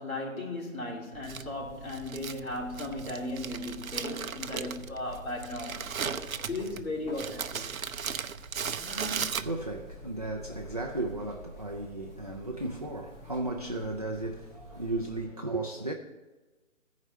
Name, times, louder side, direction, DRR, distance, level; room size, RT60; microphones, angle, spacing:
voice 1, 0.0-5.8 6.2-7.6, left 2 dB, 80° left, 3.3 m, -36 dB
sound 1, 1.1-15.2, equal, 35° left, 2.1 m, -47 dB
Crumpling crinkling, 1.2-9.9, right 7 dB, 90° right, 0.6 m, -37 dB
Gasp, 8.7-9.3, right 1 dB, 5° left, 2.2 m, -39 dB
voice 2, 9.4-15.9, right 2 dB, 30° right, 0.4 m, -35 dB
14.0 x 4.9 x 5.5 m
figure-of-eight pair, 150°, 41 cm